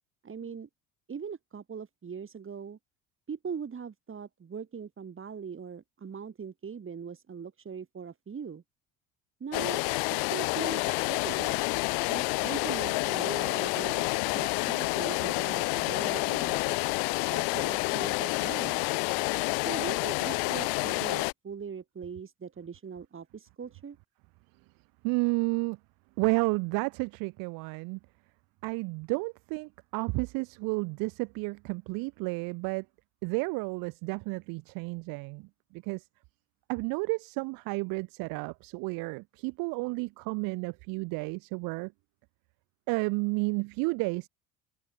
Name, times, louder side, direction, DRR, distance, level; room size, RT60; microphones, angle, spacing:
voice 1, 0.2-0.7 1.1-2.8 3.3-8.6 9.4-9.8 10.3-11.7 12.1-14.1 14.3-16.8 17.3-18.8 19.7-24.0, right 6 dB, 35° right, 5.7 m, -40 dB
sound 1, 9.5-21.3, left 40 dB or more, 75° left, 1.0 m, -29 dB
voice 2, 25.0-25.8 26.2-28.0 28.6-32.8 33.2-35.5 35.9-36.0 36.7-41.9 42.9-44.3, right 28 dB, 70° right, 1.2 m, -31 dB
hypercardioid pair, 70°, 36 cm